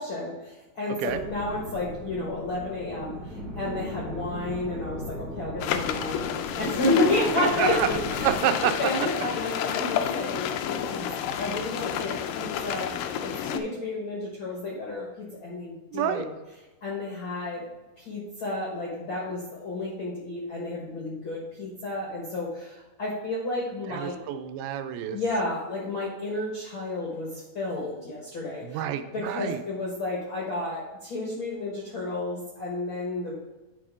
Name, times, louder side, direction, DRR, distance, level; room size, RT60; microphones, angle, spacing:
voice 1, 0.0-8.3 8.8-16.3 16.8-17.7 18.0-24.2 25.1-28.8 29.1-33.4, left 2 dB, 55° left, -3 dB, 1.3 m, -31 dB
sound 1, 1.1-8.3, equal, 65° right, 0.8 m, -38 dB
sound 2, 5.6-13.6, left 9 dB, 80° left, 2.0 m, -30 dB
voice 2, 7.4-8.0 8.2-8.9 15.9-16.3 23.9-25.2 28.6-29.6, right 10 dB, 90° right, 9 dB, 2.5 m, -28 dB
9.6 x 5.0 x 3.5 m, 1.1 s
omnidirectional pair, 4.2 m